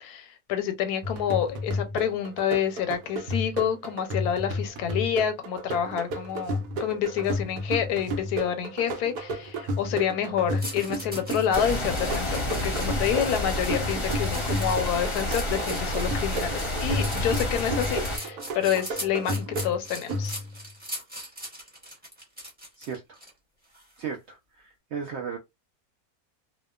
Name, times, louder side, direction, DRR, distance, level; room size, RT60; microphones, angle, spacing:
voice 1, 0.0-20.4, left 9 dB, 85° left, 1.1 m, -28 dB
sound 1, 1.0-20.7, equal, 85° right, 1.1 m, -33 dB
sound 2, 10.6-23.3 23.7-24.0, equal, 10° right, 0.8 m, -40 dB
sound 3, 11.5-18.2, left 1 dB, 30° left, 0.6 m, -29 dB
voice 2, 22.8-23.2 24.0-25.4, right 6 dB, 70° right, 0.6 m, -36 dB
2.7 x 2.1 x 2.3 m
omnidirectional pair, 1.6 m